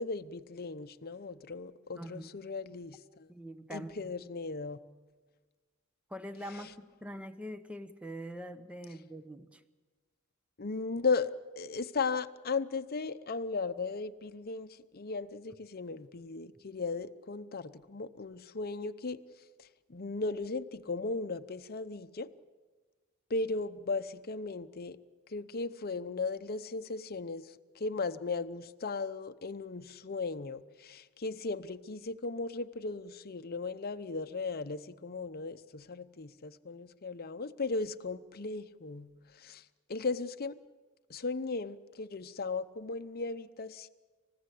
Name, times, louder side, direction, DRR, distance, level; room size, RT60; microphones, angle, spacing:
voice 1, 0.0-3.3 3.7-4.8 10.6-19.2 19.6-22.3 23.3-25.0 25.3-39.6 39.9-40.6 41.1-43.9, left 4 dB, 45° left, 10 dB, 0.8 m, -36 dB
voice 2, 1.9-2.3 3.3-4.1 6.1-9.6, equal, 5° right, 10 dB, 0.9 m, -43 dB
28.0 x 15.5 x 8.4 m, 1.3 s
head